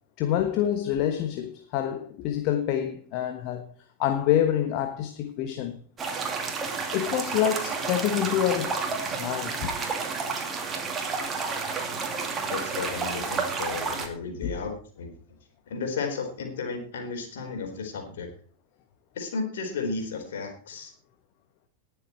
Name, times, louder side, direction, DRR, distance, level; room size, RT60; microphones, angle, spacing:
voice 1, 0.2-3.7 4.0-5.8 6.9-8.8 9.1-9.7 14.4-14.5, left 10 dB, 45° left, 1.2 m, -27 dB
sound 1, 6.0-14.1, right 4 dB, 20° right, 2.6 m, -31 dB
voice 2, 12.5-15.1 15.7-18.3 19.1-20.9, left 4 dB, 60° left, 4.1 m, -33 dB
19.5 x 7.2 x 4.5 m
figure-of-eight pair, 90°, 0 cm